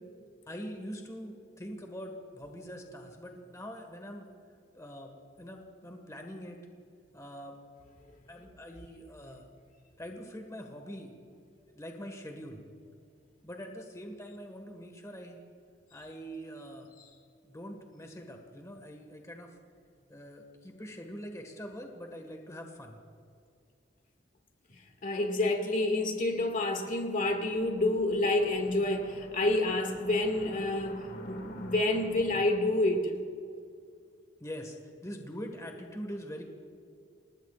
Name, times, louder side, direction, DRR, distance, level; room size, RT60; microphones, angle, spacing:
voice 1, 0.5-4.3 4.7-5.1 5.4-6.6 7.1-7.6 8.3-9.4 10.0-11.1 11.7-12.6 13.4-15.4 15.9-16.9 17.4-19.6 20.1-23.0 34.4-36.4, equal, 20° left, 1.6 m, -43 dB
voice 2, 25.0-33.1, left 2 dB, 45° left, 2.0 m, -28 dB
sound 1, 27.5-32.5, equal, 60° left, 2.1 m, -47 dB
28.5 x 19.5 x 2.5 m
head